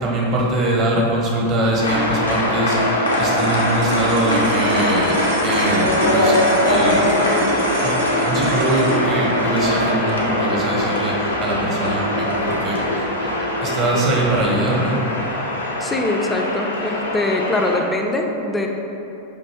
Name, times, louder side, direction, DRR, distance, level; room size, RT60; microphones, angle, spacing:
voice 1, 0.0-2.8 3.2-5.1 5.4-6.4 6.7-7.3 7.8-13.1 13.6-15.0, right 1 dB, 35° right, -3 dB, 0.9 m, -22 dB
sound 1, 1.6-14.0, left 1 dB, 90° right, 0.7 m, -28 dB
sound 2, 1.8-17.8, left 1 dB, 75° left, 0.5 m, -22 dB
sound 3, 3.0-13.5, right 4 dB, 50° right, 0.5 m, -30 dB
voice 2, 15.8-18.7, left 2 dB, 10° left, 1 dB, 0.4 m, -22 dB
5.1 x 2.6 x 3.4 m, 2.9 s
figure-of-eight pair, 90°, 0 cm